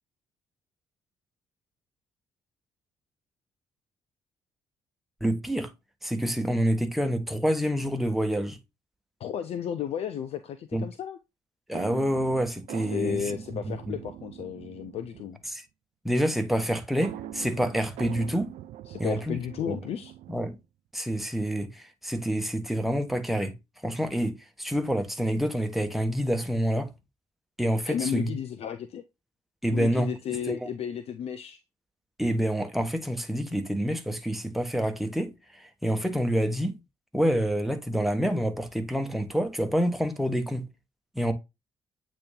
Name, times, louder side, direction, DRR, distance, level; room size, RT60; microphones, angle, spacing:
voice 1, 5.2-5.7 6.0-8.6 10.7-10.9 11.7-13.2 13.7-14.0 15.5-15.6 16.0-18.5 19.0-19.4 19.7-19.8 20.3-20.6 20.9-23.5 23.8-26.9 27.6-28.3 29.6-30.1 30.5-30.6 32.2-36.8 37.1-40.7 41.1-41.3, equal, ahead, 1.2 m, -27 dB
voice 2, 9.2-11.2 12.9-15.4 18.9-20.1 27.9-29.0 29.7-31.6, left 8 dB, 50° left, 0.5 m, -33 dB
sound 1, 11.7-15.5 17.0-20.6, right 12 dB, 60° right, 0.5 m, -42 dB
8.4 x 3.0 x 3.7 m
figure-of-eight pair, 40°, 13 cm